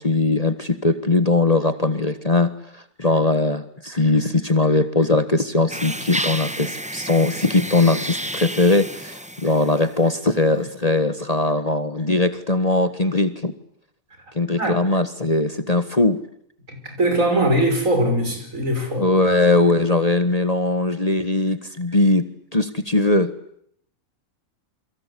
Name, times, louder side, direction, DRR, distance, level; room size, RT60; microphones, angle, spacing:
voice 1, 0.0-13.5 14.3-16.2 19.0-23.3, left 2 dB, 25° left, 1.5 m, -20 dB
sound 1, 5.7-10.1, right 1 dB, 5° right, 1.2 m, -31 dB
voice 2, 16.7-19.1, right 1 dB, 65° right, 6.2 m, -21 dB
29.0 x 22.5 x 8.4 m
omnidirectional pair, 1.5 m